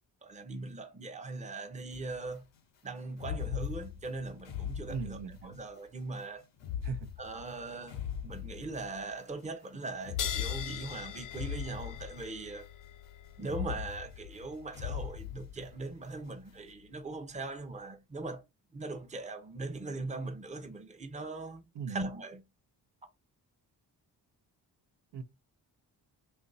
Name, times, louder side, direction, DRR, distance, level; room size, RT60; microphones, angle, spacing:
voice 1, 0.2-2.4 2.8-6.5 7.2-12.7 13.4-18.4 18.7-22.4, right 3 dB, 15° right, 0.6 m, -40 dB
sound 1, 1.9-2.2 3.1-5.6 6.5-9.1 10.0-12.6 13.4-16.0, left 9 dB, 90° left, 0.8 m, -40 dB
voice 2, 4.9-5.6 6.8-7.1 21.7-22.0 25.1-25.2, right 5 dB, 70° right, 0.7 m, -38 dB
sound 2, 10.2-17.2, left 9 dB, 50° left, 0.5 m, -44 dB
2.8 x 2.6 x 3.8 m
cardioid pair, 65°, 43 cm